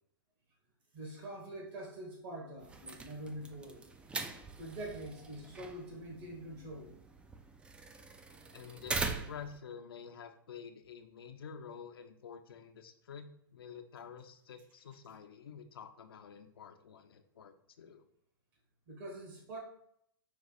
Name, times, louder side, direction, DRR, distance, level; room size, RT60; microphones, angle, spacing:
voice 1, 0.9-3.8 4.6-6.9 18.9-19.6, right 1 dB, 45° right, 0 dB, 1.7 m, -44 dB
sound 1, 2.6-9.6, right 3 dB, 10° right, 0.3 m, -42 dB
voice 2, 8.5-18.0, left 7 dB, 75° left, 7 dB, 0.6 m, -49 dB
5.2 x 2.3 x 4.0 m, 0.68 s
hypercardioid pair, 125°, 12 cm